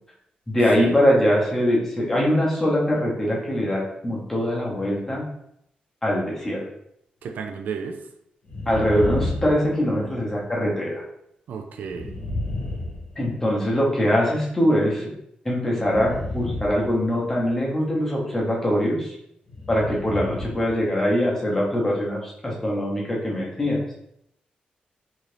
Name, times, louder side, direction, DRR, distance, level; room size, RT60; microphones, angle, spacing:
voice 1, 0.5-5.3 6.0-6.6 8.7-11.0 13.2-15.1 15.4-19.2 19.7-23.8, equal, 15° left, -4 dB, 0.8 m, -22 dB
voice 2, 7.2-8.0 11.5-12.1, right 6 dB, 75° right, 5 dB, 0.3 m, -32 dB
sound 1, 8.4-10.3 11.8-13.7 15.8-17.5 19.5-20.8 21.1-21.2, left 2 dB, 45° left, 1.0 m, -31 dB
2.7 x 2.4 x 3.2 m, 0.77 s
wide cardioid pair, 135°, 3 cm